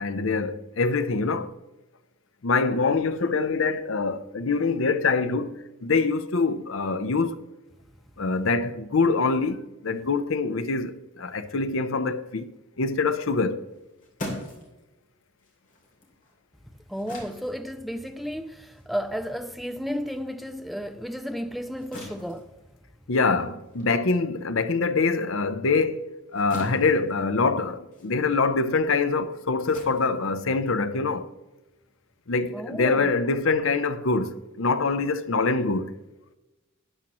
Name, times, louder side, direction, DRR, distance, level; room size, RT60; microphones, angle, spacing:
voice 1, 0.0-1.5 2.4-7.4 8.2-12.5 12.8-13.6 23.1-26.0 26.3-31.3 32.3-35.9, left 4 dB, 65° left, 0.7 m, -24 dB
sound 1, 13.6-20.4 20.8-31.0, left 1 dB, 40° left, 3.0 m, -44 dB
voice 2, 16.9-22.5 32.5-33.1, equal, ahead, 0.5 m, -33 dB
12.5 x 10.0 x 3.0 m
head